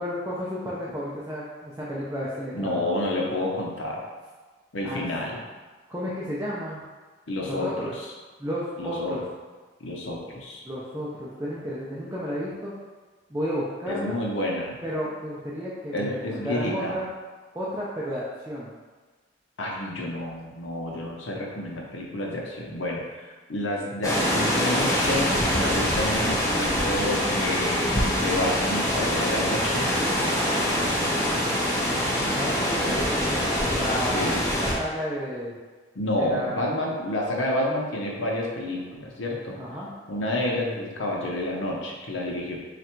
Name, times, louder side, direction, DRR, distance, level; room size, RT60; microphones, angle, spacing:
voice 1, 0.0-2.8 4.8-5.0 5.9-6.8 7.4-7.9 8.4-9.2 10.6-12.7 13.3-14.2 14.8-17.1 17.5-18.7 32.3-35.5 36.2-36.6 39.5-39.9, equal, 15° right, -8 dB, 0.5 m, -32 dB
voice 2, 2.5-4.0 4.7-5.4 7.3-7.9 8.8-9.2 9.8-10.6 13.9-14.8 15.9-17.0 19.6-23.0 23.5-29.9 32.9-33.0 34.1-34.4 35.9-39.6 40.1-42.6, left 1 dB, 75° left, -2 dB, 0.8 m, -29 dB
sound 1, 24.0-34.7, equal, 20° left, 0.8 m, -24 dB
3.3 x 2.5 x 4.4 m, 1.3 s
head